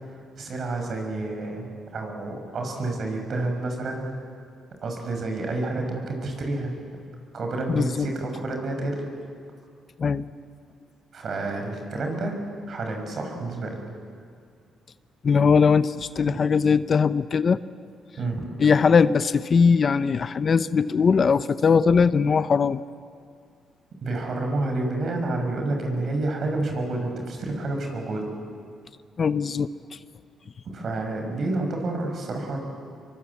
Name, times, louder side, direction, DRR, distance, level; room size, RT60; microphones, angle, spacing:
voice 1, 0.4-4.0 4.8-6.8 7.3-9.0 11.1-12.4 12.7-13.8 16.3-16.4 18.2-18.5 24.0-28.3 30.6-32.6, right 2 dB, 55° right, 3 dB, 6.2 m, -29 dB
voice 2, 7.7-8.1 10.0-10.3 15.2-17.6 18.6-22.8 29.2-29.7, left 5 dB, 45° left, 14 dB, 0.7 m, -20 dB
26.0 x 23.5 x 8.4 m, 2.2 s
cardioid pair, 90°, 0 cm